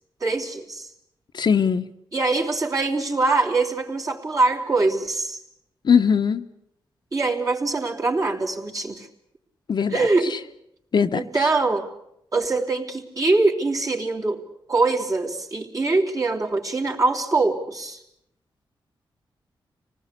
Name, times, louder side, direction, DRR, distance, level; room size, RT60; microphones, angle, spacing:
voice 1, 0.2-0.9 2.1-5.4 7.1-9.1 9.9-10.3 11.1-11.9 12.3-14.4 14.7-18.0, right 3 dB, 40° right, 0 dB, 3.3 m, -23 dB
voice 2, 1.3-1.9 5.8-6.4 9.7-10.4 10.9-11.5, left 6 dB, 60° left, 8 dB, 1.0 m, -21 dB
26.0 x 19.0 x 8.3 m, 0.78 s
wide cardioid pair, 95°, 9 cm